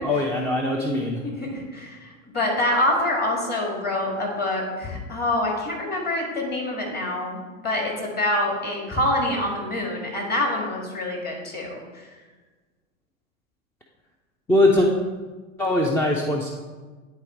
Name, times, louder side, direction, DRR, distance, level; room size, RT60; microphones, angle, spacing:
voice 1, 0.0-1.2 14.5-14.9 15.6-16.5, left 1 dB, 5° left, -1 dB, 0.4 m, -21 dB
voice 2, 1.4-2.1 2.3-11.8, left 1 dB, 25° left, -1 dB, 2.1 m, -26 dB
9.6 x 4.0 x 4.5 m, 1.3 s
hypercardioid pair, 110°, 40 cm